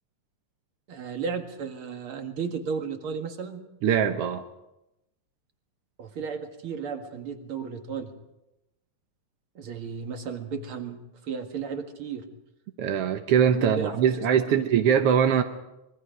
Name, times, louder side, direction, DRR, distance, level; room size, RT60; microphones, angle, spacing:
voice 1, 0.9-3.7 6.0-8.1 9.6-12.3 13.6-14.7, right 6 dB, 45° right, 5 dB, 2.3 m, -34 dB
voice 2, 3.8-4.4 12.8-15.4, right 8 dB, 70° right, 6 dB, 1.5 m, -22 dB
26.0 x 22.0 x 5.1 m, 0.92 s
omnidirectional pair, 3.8 m